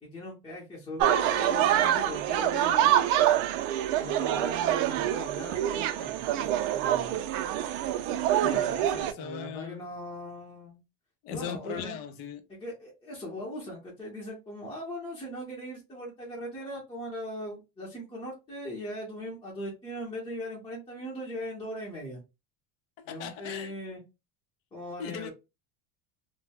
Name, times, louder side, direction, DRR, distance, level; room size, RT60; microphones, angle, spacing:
voice 1, 0.0-3.4 4.0-7.2 8.4-8.8 9.2-10.8 11.3-12.0 12.5-22.2 23.0-24.0 24.7-25.3, left 1 dB, 10° left, 0.8 m, -39 dB
sound 1, 1.0-9.1, right 11 dB, 70° right, 0.5 m, -26 dB
voice 2, 8.4-9.9 11.2-12.5 23.0-23.7 25.0-25.3, left 7 dB, 65° left, 0.6 m, -39 dB
2.2 x 2.1 x 3.3 m
cardioid pair, 150°, 44 cm